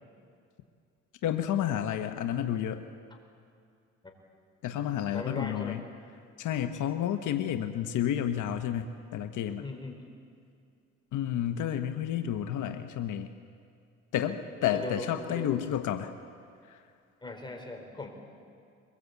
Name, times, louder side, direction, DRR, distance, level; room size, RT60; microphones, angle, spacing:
voice 1, 1.2-2.8 4.6-5.8 6.4-9.6 11.1-13.3 14.1-16.1 16.7-16.8, left 10 dB, 80° left, 7 dB, 1.1 m, -30 dB
voice 2, 5.1-5.8 9.6-10.0 14.5-15.6 17.2-18.1, left 3 dB, 15° left, 2 dB, 4.5 m, -39 dB
23.0 x 21.0 x 8.2 m, 2.4 s
cardioid pair, 90°, 30 cm